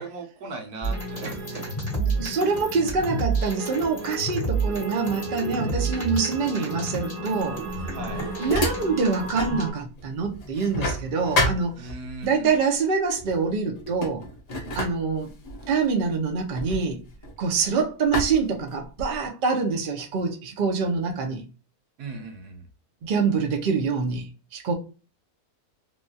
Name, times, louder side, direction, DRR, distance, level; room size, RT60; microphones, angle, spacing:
voice 1, 0.0-1.6 7.9-8.2 11.8-12.6 22.0-22.7, right 3 dB, 85° right, 1.4 m, -38 dB
sound 1, 0.8-9.7, right 3 dB, 10° left, 1.1 m, -30 dB
voice 2, 2.0-7.6 8.4-11.9 12.2-14.2 14.7-15.3 15.7-17.0 17.4-21.4 23.0-24.3 24.5-24.7, right 5 dB, 50° right, 0.6 m, -25 dB
sound 2, 7.6-9.6 10.0-12.3 13.2-13.4 13.7-17.6 18.1-19.3, left 1 dB, 55° left, 0.4 m, -30 dB
3.2 x 2.3 x 2.6 m
omnidirectional pair, 1.7 m